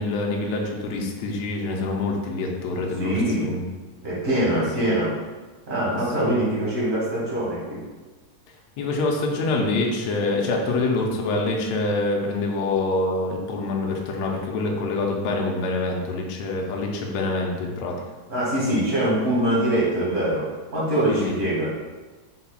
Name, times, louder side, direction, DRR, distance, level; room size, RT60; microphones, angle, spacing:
voice 1, 0.0-3.1 3.4-3.6 4.5-4.6 5.8-6.0 6.2-6.3 8.8-18.0 21.1-21.5, left 2 dB, 75° left, 0 dB, 1.7 m, -26 dB
voice 2, 3.0-3.5 4.0-5.1 5.7-7.8 18.3-21.7, right 1 dB, 65° right, -6 dB, 0.7 m, -23 dB
5.6 x 3.9 x 2.2 m, 1.3 s
omnidirectional pair, 3.4 m